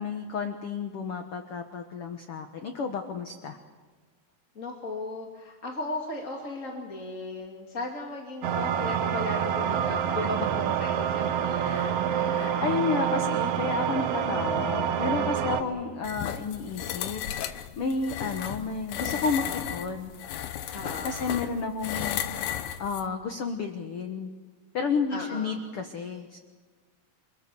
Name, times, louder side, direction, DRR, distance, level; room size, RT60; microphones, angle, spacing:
voice 1, 0.0-3.6 11.6-17.2 17.5-19.4 19.7-20.1 21.0-22.2 22.8-24.3 24.7-26.4, left 5 dB, 60° left, 6 dB, 1.5 m, -31 dB
voice 2, 4.5-12.5 15.2-15.9 20.7-21.3 25.1-25.6, left 2 dB, 25° left, 0 dB, 2.1 m, -37 dB
sound 1, 8.4-15.6, right 9 dB, 85° right, 1.3 m, -27 dB
sound 2, 16.0-23.1, left 10 dB, 85° left, 2.9 m, -34 dB
29.0 x 21.0 x 6.9 m, 1.5 s
omnidirectional pair, 4.2 m